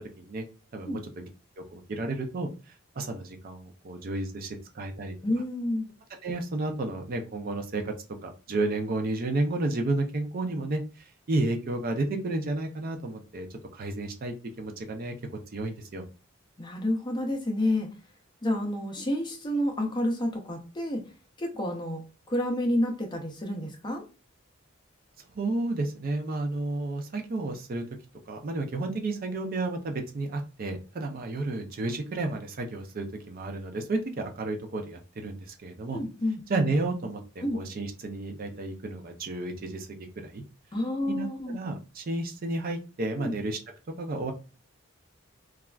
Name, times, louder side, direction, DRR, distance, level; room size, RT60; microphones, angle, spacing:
voice 1, 0.7-1.3 1.6-5.1 6.2-7.9 8.2-13.5 13.7-15.1 15.5-16.1 25.3-27.8 28.3-36.0 36.5-39.9 40.2-40.4 41.1-43.6 44.0-44.3, right 2 dB, 45° right, 4 dB, 0.4 m, -32 dB
voice 2, 5.2-5.9 16.6-17.9 18.4-21.0 21.4-22.0 22.3-24.0 35.9-36.4 37.4-37.6 40.7-41.6 43.2-43.3, left 1 dB, 20° left, 3 dB, 0.5 m, -29 dB
3.2 x 2.3 x 2.3 m, 0.32 s
head